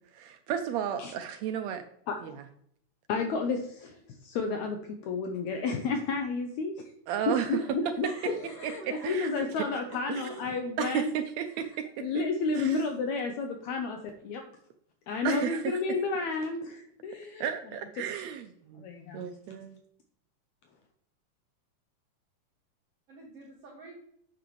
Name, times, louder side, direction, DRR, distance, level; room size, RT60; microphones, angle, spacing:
voice 1, 0.1-1.8 2.2-2.3 7.1-7.6 8.6-8.7 9.0-9.3 10.1-10.2 10.8-11.9 12.6-12.8 15.2-15.6 17.4-18.8 19.1-19.8, right 9 dB, 80° right, 7 dB, 1.6 m, -33 dB
voice 2, 3.1-6.8 7.3-11.2 11.6-11.7 12.0-14.4 15.1-17.5 18.0-18.1 18.8-19.6, left 4 dB, 75° left, 4 dB, 2.0 m, -32 dB
voice 3, 8.0-10.5 23.1-24.0, right 3 dB, 55° right, -6 dB, 2.6 m, -47 dB
9.1 x 7.0 x 3.1 m, 0.70 s
omnidirectional pair, 3.5 m